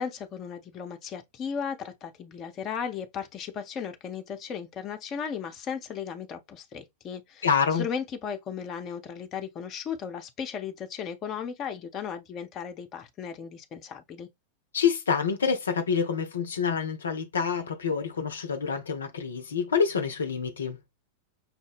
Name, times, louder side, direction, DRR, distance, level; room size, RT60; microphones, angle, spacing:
voice 1, 0.0-14.3, left 7 dB, 30° left, 0.7 m, -36 dB
voice 2, 7.4-7.9 14.7-20.8, left 6 dB, 70° left, 0.5 m, -27 dB
5.8 x 2.1 x 3.4 m
figure-of-eight pair, 90°, 0 cm